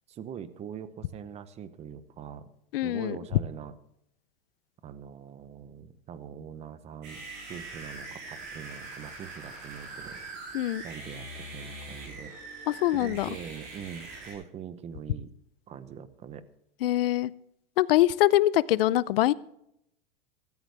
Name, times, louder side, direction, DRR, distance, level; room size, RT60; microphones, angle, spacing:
voice 1, 0.1-2.5 2.8-3.7 4.8-7.2 7.5-10.2 10.8-12.3 12.9-15.3 15.7-16.4, right 8 dB, 20° right, 14 dB, 0.9 m, -43 dB
voice 2, 2.7-3.2 10.5-10.8 12.7-13.3 16.8-17.3 17.8-19.3, left 14 dB, 70° left, 19 dB, 0.7 m, -23 dB
sound 1, 7.0-14.3, right 2 dB, 35° right, 7.0 m, -42 dB
16.0 x 14.0 x 3.5 m, 0.77 s
supercardioid pair, 150°, 29 cm